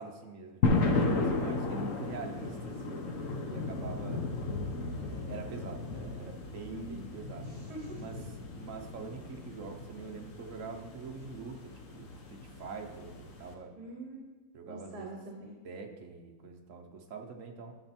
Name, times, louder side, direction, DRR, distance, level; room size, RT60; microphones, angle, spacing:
voice 1, 0.0-4.3 5.0-7.5 8.0-13.7 14.5-15.2 15.6-17.8, right 4 dB, 50° right, 3 dB, 1.3 m, -45 dB
sound 1, 0.6-13.5, left 3 dB, 55° left, 1.4 m, -34 dB
voice 2, 7.4-8.0 13.7-14.3 14.7-15.6, right 1 dB, 70° right, 0 dB, 1.8 m, -44 dB
12.5 x 7.3 x 4.4 m, 1.2 s
omnidirectional pair, 1.8 m